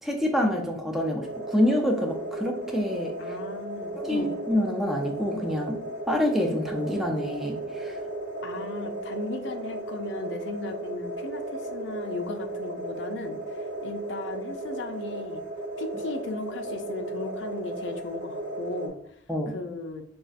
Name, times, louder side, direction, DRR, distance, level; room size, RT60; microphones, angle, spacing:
voice 1, 0.0-3.4 4.0-5.8 6.1-8.0 19.3-19.6, equal, ahead, 1 dB, 0.4 m, -27 dB
sound 1, 1.2-18.9, right 1 dB, 70° right, 1.1 m, -35 dB
voice 2, 3.2-4.4 8.4-15.4 15.8-19.0 19.5-20.0, left 3 dB, 80° left, 6 dB, 0.5 m, -36 dB
5.2 x 2.3 x 2.4 m, 0.69 s
head